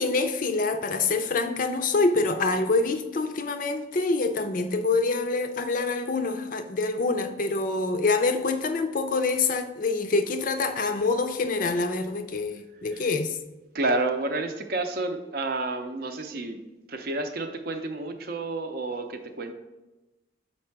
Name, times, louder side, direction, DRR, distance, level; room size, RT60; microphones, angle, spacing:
voice 1, 0.0-13.4, left 3 dB, 45° left, 0.4 m, -26 dB
voice 2, 13.7-16.6 16.9-19.5, right 2 dB, 50° right, 0.6 m, -30 dB
6.5 x 4.3 x 4.6 m
head